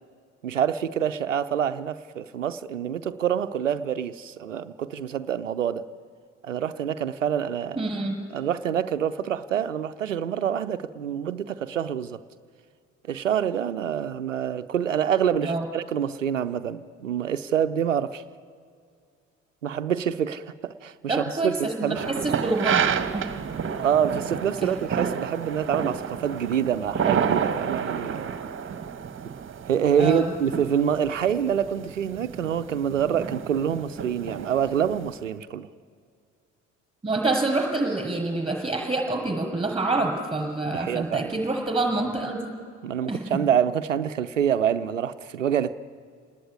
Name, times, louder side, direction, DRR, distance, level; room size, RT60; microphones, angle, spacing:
voice 1, 0.4-5.8 6.4-7.8 8.3-12.2 13.1-18.2 19.6-22.0 23.7-28.3 29.7-35.7 40.7-41.4 42.8-45.7, right 8 dB, 85° right, 11 dB, 0.7 m, -26 dB
voice 2, 7.8-8.2 15.4-15.6 21.1-23.2 24.6-24.7 30.0-30.3 37.0-42.5 43.1-43.2, right 2 dB, 15° right, 1 dB, 7.1 m, -27 dB
sound 1, 21.9-35.1, right 7 dB, 35° right, 1.8 m, -30 dB
27.5 x 19.0 x 9.7 m, 2.2 s
figure-of-eight pair, 50°, 37 cm